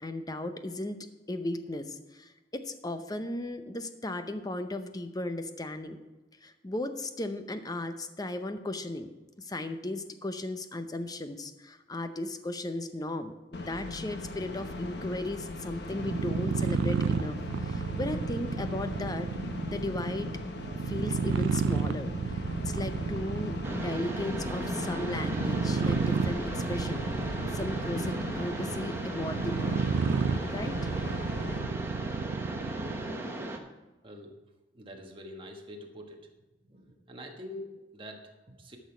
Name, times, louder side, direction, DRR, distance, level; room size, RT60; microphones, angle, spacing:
voice 1, 0.0-6.0 6.4-9.1 9.4-19.3 19.6-20.3 20.8-22.1 22.7-27.1 27.5-29.8 30.5-30.7, left 1 dB, 20° left, 9 dB, 0.7 m, -36 dB
sound 1, 13.5-31.6, left 2 dB, 65° left, 1.1 m, -39 dB
sound 2, 15.9-33.2, right 5 dB, 80° right, 0.4 m, -32 dB
Mechanisms, 23.6-33.6, right 1 dB, 15° right, 1.0 m, -37 dB
voice 2, 34.0-34.4 34.7-36.4 36.6-38.8, left 1 dB, 30° right, 2 dB, 1.4 m, -45 dB
12.0 x 6.3 x 4.9 m, 1.1 s
head